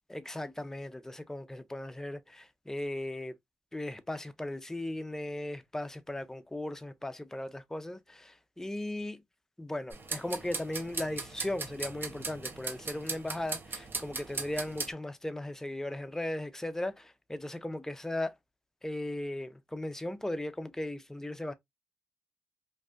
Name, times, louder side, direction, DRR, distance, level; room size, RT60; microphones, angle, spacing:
voice 1, 0.1-3.3 3.7-9.2 9.6-18.3 18.8-21.5, left 1 dB, 10° left, 0.4 m, -37 dB
sound 1, 9.9-14.9, right 4 dB, 45° right, 0.7 m, -38 dB
2.5 x 2.3 x 2.2 m
supercardioid pair, 45°, 5 cm